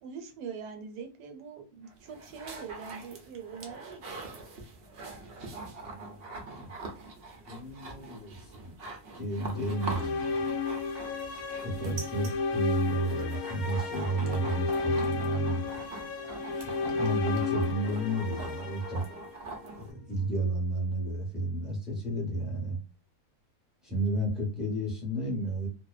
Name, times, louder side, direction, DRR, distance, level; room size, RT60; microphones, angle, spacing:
voice 1, 0.0-4.0, right 6 dB, 80° right, 5 dB, 1.2 m, -43 dB
sound 1, 1.9-19.9, right 3 dB, 60° right, 0.6 m, -43 dB
voice 2, 5.8-6.7 7.5-8.7 9.2-10.6 11.6-15.6 16.8-19.0 19.8-22.8 23.8-25.7, right 1 dB, ahead, -3 dB, 0.4 m, -32 dB
sound 2, 9.5-19.7, left 4 dB, 70° left, 1.0 m, -33 dB
2.7 x 2.0 x 2.3 m, 0.36 s
omnidirectional pair, 1.7 m